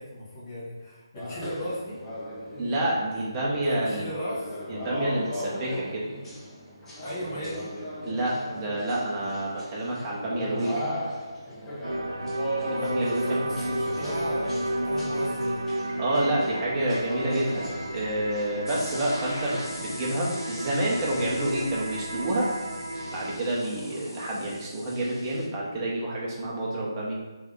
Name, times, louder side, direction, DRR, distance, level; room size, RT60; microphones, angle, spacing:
voice 1, 0.0-2.0 3.1-3.2 3.6-4.5 7.0-7.7 12.7-15.6, equal, 35° left, -7 dB, 1.4 m, -36 dB
sound 1, 1.1-18.6, equal, 10° left, 0.7 m, -37 dB
voice 2, 2.6-4.1 4.7-6.1 8.0-10.7 12.7-13.2 16.0-22.5 23.1-27.1, right 1 dB, 20° right, -4 dB, 0.9 m, -28 dB
sound 2, 11.8-23.4, right 1 dB, 75° right, 0.6 m, -32 dB
sound 3, 18.7-25.5, equal, 55° left, 1.3 m, -41 dB
3.5 x 3.3 x 3.7 m, 1.2 s
figure-of-eight pair, 150°, 2 cm